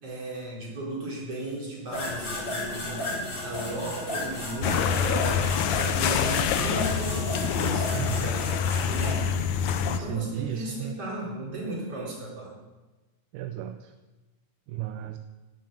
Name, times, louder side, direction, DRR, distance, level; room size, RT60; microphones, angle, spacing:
voice 1, 0.0-3.1 3.4-5.4 5.8-9.4 9.8-12.5, right 2 dB, 45° right, -4 dB, 4.9 m, -35 dB
sound 1, 1.9-9.1, left 1 dB, 35° left, 4.1 m, -34 dB
sound 2, 4.6-10.0, left 7 dB, 75° left, 2.1 m, -26 dB
voice 2, 7.9-8.3 9.9-10.9 13.3-13.9 14.7-15.2, right 11 dB, 80° right, 8 dB, 2.1 m, -34 dB
10.5 x 9.4 x 9.2 m, 1.2 s
omnidirectional pair, 3.6 m